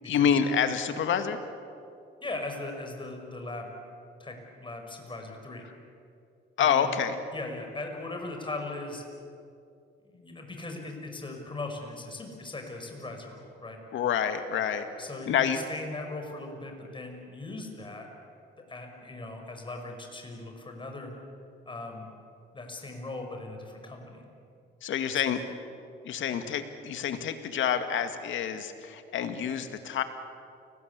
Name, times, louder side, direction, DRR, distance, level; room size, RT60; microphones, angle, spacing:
voice 1, 0.1-1.4 6.6-7.2 13.9-14.9 15.3-15.6 24.8-25.4 26.0-30.0, left 8 dB, 75° left, 8 dB, 2.2 m, -27 dB
voice 2, 2.2-3.7 4.2-5.7 6.6-6.9 7.3-9.0 10.0-13.8 15.0-18.1 18.7-21.1 21.7-22.1 22.5-24.3 25.1-25.2, left 2 dB, 25° left, 3 dB, 5.8 m, -39 dB
29.0 x 20.0 x 8.4 m, 2.5 s
cardioid pair, 90°, 20 cm